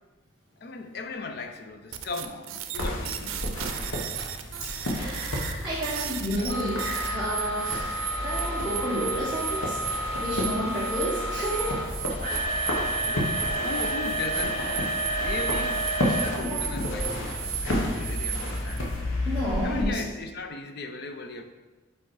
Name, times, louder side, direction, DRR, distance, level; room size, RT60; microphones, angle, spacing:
voice 1, 0.6-3.6 13.0-14.6 15.2-15.9 16.2-18.9 19.6-21.4, left 3 dB, 50° left, 7 dB, 0.5 m, -37 dB
sound 1, 1.9-18.8, right 9 dB, 90° right, 0.5 m, -36 dB
sound 2, 2.8-19.8, left 1 dB, 80° left, 1.2 m, -32 dB
sound 3, 4.2-4.3 5.0-5.2 6.4-17.2 17.8-17.9 18.5-18.6, right 1 dB, 30° left, 1.8 m, -31 dB
voice 2, 4.6-9.8 10.2-11.8 13.2-13.4 16.4-16.6 19.2-20.0, equal, 5° right, -12 dB, 1.3 m, -31 dB
5.1 x 4.8 x 4.7 m, 1.2 s
head